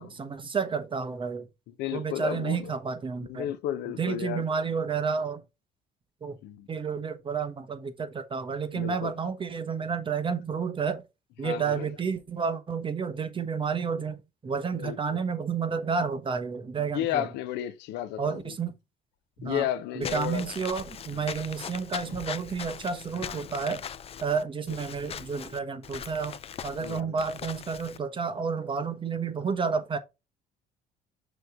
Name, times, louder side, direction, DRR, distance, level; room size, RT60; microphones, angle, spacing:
voice 1, 0.0-1.5 1.9-3.5 4.0-5.4 6.2-6.4 6.7-11.0 11.4-17.3 18.2-18.7 19.4-19.7 19.9-23.8 24.2-30.0, right 5 dB, 30° right, 1.1 m, -31 dB
voice 2, 1.8-2.7 3.2-4.4 6.4-6.7 8.7-9.1 11.4-11.9 14.7-15.2 16.8-18.5 19.4-20.5 21.1-21.3 23.2-23.4 26.8-27.2, left 12 dB, 90° left, 0.8 m, -33 dB
Walk footsteps / Squeak, 20.0-28.0, left 8 dB, 35° left, 0.5 m, -40 dB
6.4 x 3.2 x 4.9 m
cardioid pair, 110°, 17 cm